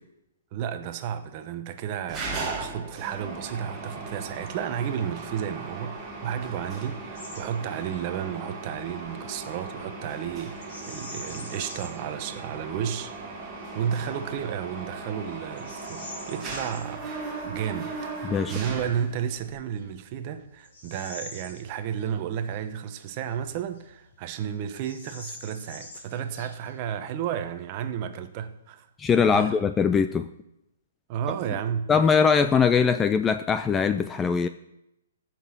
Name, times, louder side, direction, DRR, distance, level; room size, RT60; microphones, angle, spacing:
voice 1, 0.5-17.1 17.4-17.9 18.2-28.9 29.3-29.6 31.1-31.9, right 9 dB, 30° right, 0.9 m, -32 dB
Mechanisms, 2.1-19.5, right 3 dB, 10° right, 1.8 m, -38 dB
Bird vocalization bird call bird song, 7.1-7.4 7.8-8.0 10.6-12.1 12.6-12.7 13.3-13.7 14.3-14.4 14.9-16.8 19.0-19.1 19.7-22.1 22.5-22.6 23.3-24.1 24.3-24.4 24.7-26.8, left 2 dB, 50° left, 4.5 m, -44 dB
voice 2, 29.0-30.3 31.9-34.5, left 6 dB, 10° left, 0.3 m, -21 dB
14.0 x 6.1 x 7.1 m
hypercardioid pair, 165°, 0 cm